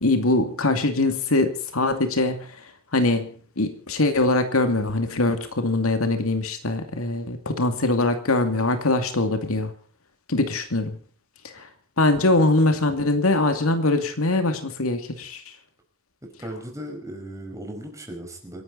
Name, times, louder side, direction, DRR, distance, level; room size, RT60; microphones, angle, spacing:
voice 1, 0.0-2.5 2.9-3.3 3.6-9.7 10.3-11.0 11.5-11.7 12.0-15.5, left 2 dB, 85° left, 7 dB, 2.5 m, -22 dB
voice 2, 16.2-18.6, right 1 dB, 15° right, 2 dB, 5.5 m, -37 dB
27.5 x 12.0 x 4.1 m, 0.43 s
head